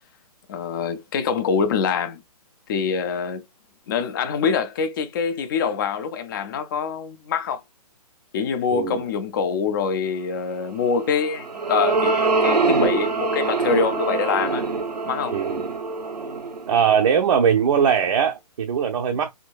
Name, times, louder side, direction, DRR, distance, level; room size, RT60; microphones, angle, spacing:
voice 1, 0.5-2.2 2.7-3.4 3.9-7.6 8.3-14.7 15.1-15.4, left 6 dB, 35° left, 0.4 m, -25 dB
voice 2, 8.7-9.0 15.3-15.7 16.7-19.3, right 7 dB, 50° right, 0.6 m, -20 dB
sound 1, 11.0-17.5, right 4 dB, 85° right, 0.7 m, -24 dB
3.6 x 2.2 x 2.4 m
figure-of-eight pair, 135°, 20 cm